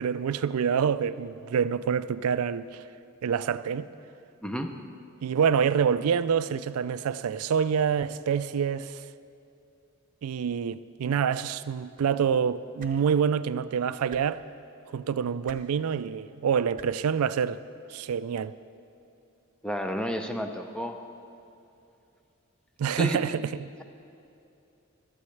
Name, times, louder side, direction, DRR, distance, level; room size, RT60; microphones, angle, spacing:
voice 1, 0.0-2.8 3.2-3.9 5.2-9.0 10.2-14.4 14.9-17.6 17.9-18.6 22.8-23.5, right 7 dB, 90° right, 0.4 m, -26 dB
sound 1, 12.8-12.9 14.1-14.2 15.4-15.6 16.7-16.9 18.1-18.2, right 5 dB, 40° right, 0.9 m, -47 dB
voice 2, 19.6-21.0 23.0-23.2, equal, 5° left, 0.6 m, -31 dB
16.0 x 13.0 x 3.3 m
head